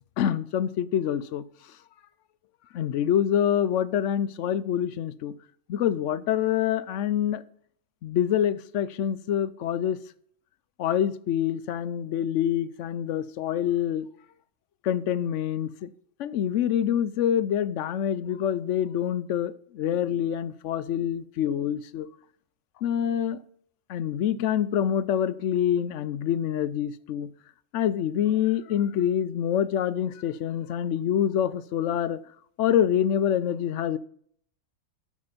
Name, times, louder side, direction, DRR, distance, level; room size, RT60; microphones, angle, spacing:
voice 1, 0.2-1.4 2.7-5.3 5.7-7.4 8.0-10.0 10.8-14.1 14.8-15.9 16.2-22.1 22.8-23.4 23.9-27.3 27.7-32.2 32.6-34.0, left 10 dB, 65° left, 0.8 m, -26 dB
12.0 x 6.6 x 5.1 m
omnidirectional pair, 1.5 m